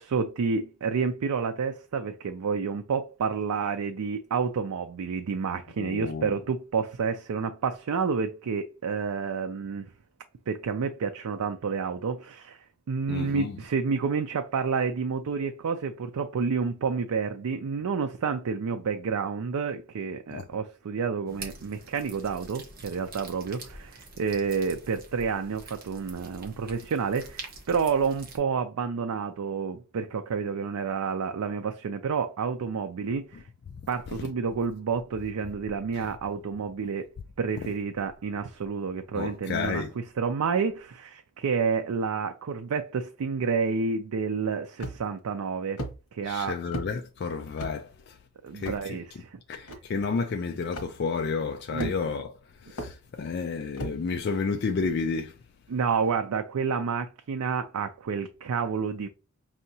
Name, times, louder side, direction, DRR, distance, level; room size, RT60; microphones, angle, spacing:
voice 1, 0.0-9.9 10.5-33.4 33.9-37.1 37.4-45.8 46.1-46.6 48.4-49.4 51.7-52.0 55.7-59.1, right 5 dB, 85° right, 0.4 m, -29 dB
voice 2, 5.8-6.3 13.1-13.5 20.3-20.4 39.1-39.9 46.3-47.9 48.5-49.0 49.5-52.3 52.7-55.3, left 4 dB, 50° left, 0.3 m, -31 dB
sound 1, 21.3-28.4, right 3 dB, 40° right, 0.9 m, -45 dB
sound 2, 44.8-45.2 45.8-46.0 46.7-46.9 47.6-47.8 48.6-48.8 49.7-49.8 50.7-50.9 51.8-52.2 52.8-52.9 53.8-54.0, right 1 dB, 80° left, 1.2 m, -35 dB
5.4 x 2.8 x 2.7 m
head